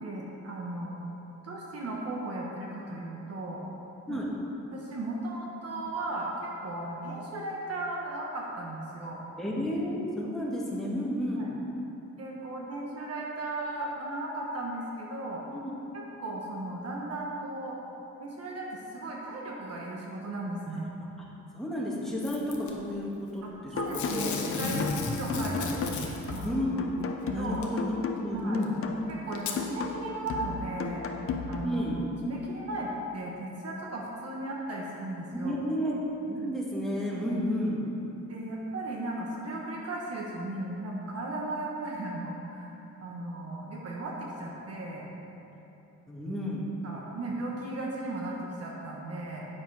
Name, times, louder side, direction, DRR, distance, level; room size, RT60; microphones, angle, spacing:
voice 1, 0.0-1.0 1.4-3.6 4.1-4.2 4.7-6.3 6.6-9.2 11.3-11.5 12.2-15.4 15.9-17.8 18.2-20.9 23.4-26.6 27.2-27.6 28.3-28.6 29.1-31.0 31.5-31.8 32.2-35.5 38.3-45.1 46.8-49.5, right 2 dB, 55° right, -3 dB, 1.3 m, -36 dB
voice 2, 9.4-11.5 15.5-15.7 20.7-21.1 21.5-24.3 25.0-25.1 25.3-25.6 26.4-26.9 27.3-28.7 31.6-32.0 35.3-35.9 36.3-37.8 46.1-46.6, left 1 dB, ahead, -5 dB, 1.7 m, -32 dB
Packing tape duct tape / Tearing, 22.2-22.7 23.9-26.5 27.6-27.7 28.6-28.7 29.3-29.6 30.3-30.4, left 4 dB, 80° left, 1.0 m, -34 dB
sound 1, 23.8-31.8, left 5 dB, 50° left, 0.7 m, -36 dB
8.9 x 6.9 x 4.7 m, 2.9 s
cardioid pair, 115°, 29 cm